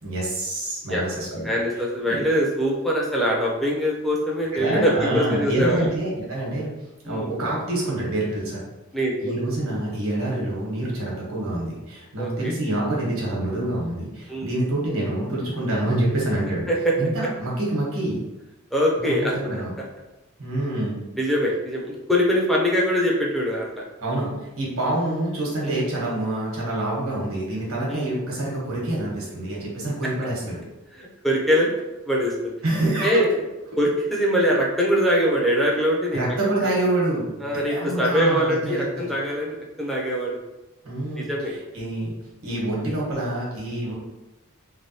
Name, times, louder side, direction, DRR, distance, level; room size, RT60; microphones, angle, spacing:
voice 1, 0.0-1.5 2.0-2.2 4.5-6.7 7.0-8.6 9.2-16.7 17.0-18.2 19.0-19.7 20.4-21.0 24.0-30.6 32.6-33.3 33.7-33.8 36.1-38.9 40.8-41.3 41.7-42.1 42.4-43.9, right 1 dB, 80° right, -4 dB, 1.1 m, -26 dB
voice 2, 1.4-5.9 7.1-7.3 8.9-9.3 12.2-12.5 14.3-14.5 16.7-16.9 18.7-19.6 21.2-23.8 25.6-25.8 27.9-28.1 30.9-31.7 32.0-32.5 33.0-33.3 33.8-36.3 36.6-36.7 37.4-40.4 41.2-41.6 42.5-42.6 43.8-43.9, equal, ahead, -4 dB, 0.5 m, -23 dB
3.2 x 2.3 x 2.7 m, 1.0 s
head